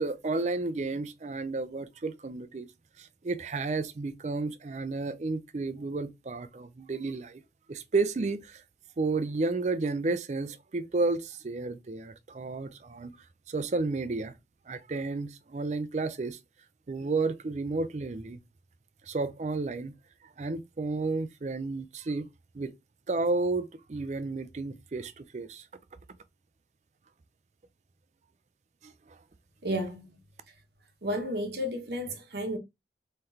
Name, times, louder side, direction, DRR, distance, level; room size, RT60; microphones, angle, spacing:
voice 1, 0.0-2.7 3.0-7.4 7.7-8.6 9.0-13.2 13.5-14.3 14.7-16.4 16.9-18.4 19.1-19.9 20.4-22.3 22.5-22.7 23.1-25.7 28.8-29.2, right 3 dB, 40° right, 0.4 m, -32 dB
voice 2, 29.6-30.2 31.0-32.6, equal, 65° right, 0.9 m, -32 dB
3.8 x 3.2 x 2.7 m
head